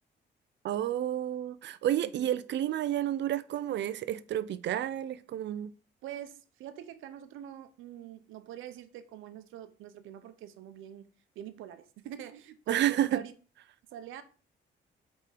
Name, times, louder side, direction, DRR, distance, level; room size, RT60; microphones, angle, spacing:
voice 1, 0.6-5.7 12.7-13.2, right 11 dB, 65° right, 0.4 m, -30 dB
voice 2, 6.0-11.1 11.4-13.3 13.9-14.2, right 11 dB, 90° right, 0.8 m, -45 dB
5.5 x 3.7 x 5.0 m
cardioid pair, 90°, 20 cm